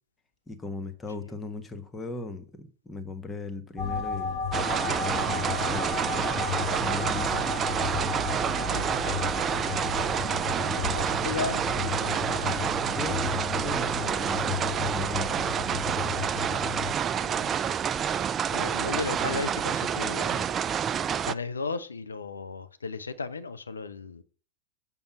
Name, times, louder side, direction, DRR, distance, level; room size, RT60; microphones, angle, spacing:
voice 1, 0.5-5.9 6.7-7.4 12.9-13.2 13.5-15.4, left 3 dB, 10° left, 1.3 m, -38 dB
sound 1, 3.8-16.9, left 5 dB, 35° left, 2.6 m, -33 dB
sound 2, 4.5-21.3, right 8 dB, 25° right, 0.3 m, -28 dB
voice 2, 10.8-12.8 16.5-16.7 17.2-17.6 18.5-20.5 21.2-24.2, left 4 dB, 75° left, 0.7 m, -35 dB
6.9 x 5.4 x 5.8 m
figure-of-eight pair, 90°, 0 cm